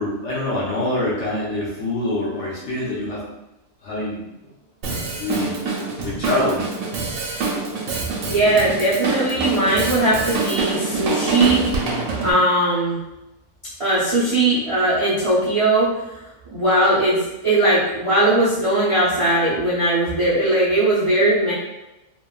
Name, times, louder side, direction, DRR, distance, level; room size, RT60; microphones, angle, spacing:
voice 1, 0.0-3.3 3.8-4.3 5.2-5.6 6.0-6.7, left 1 dB, 55° left, -6 dB, 0.9 m, -25 dB
Drum kit, 4.8-12.3, right 3 dB, 70° right, 0.9 m, -25 dB
voice 2, 8.3-11.6 12.2-13.0 13.8-15.9 16.5-21.5, right 1 dB, 50° right, -10 dB, 0.4 m, -19 dB
3.0 x 2.2 x 2.3 m, 0.95 s
omnidirectional pair, 1.6 m